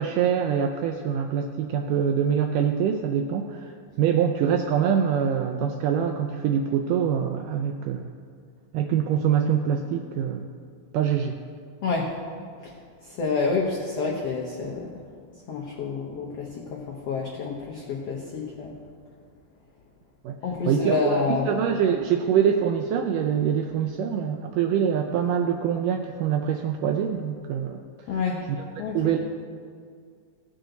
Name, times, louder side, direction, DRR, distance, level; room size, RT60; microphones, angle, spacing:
voice 1, 0.0-3.7 4.0-8.2 8.7-10.5 10.9-11.4 20.2-20.4 20.7-27.8 28.9-29.2, right 8 dB, 85° right, 4 dB, 1.9 m, -24 dB
voice 2, 13.0-14.9 15.5-18.7 20.4-21.5 28.1-28.4 28.8-29.0, left 4 dB, 85° left, -2 dB, 1.3 m, -28 dB
17.0 x 6.3 x 3.9 m, 2.2 s
omnidirectional pair, 4.2 m